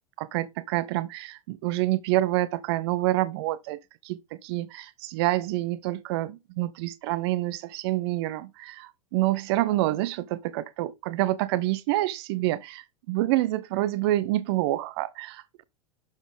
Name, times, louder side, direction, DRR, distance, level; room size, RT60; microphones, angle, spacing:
voice 1, 0.2-15.6, right 16 dB, 50° right, 0.5 m, -27 dB
11.5 x 4.0 x 3.5 m
figure-of-eight pair, 85°, 17 cm